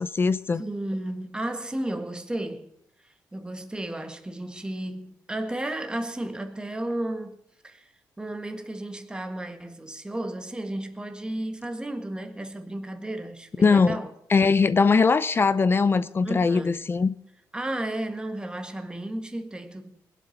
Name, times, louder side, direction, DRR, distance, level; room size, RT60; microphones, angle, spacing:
voice 1, 0.0-0.6 13.6-14.0 14.3-17.1, left 4 dB, 30° left, 0.6 m, -21 dB
voice 2, 0.5-2.7 3.3-7.4 7.6-7.9 8.2-14.1 16.2-16.8 17.5-20.0, right 1 dB, 10° right, 1.8 m, -33 dB
21.0 x 8.4 x 6.0 m
cardioid pair, 105°, 7 cm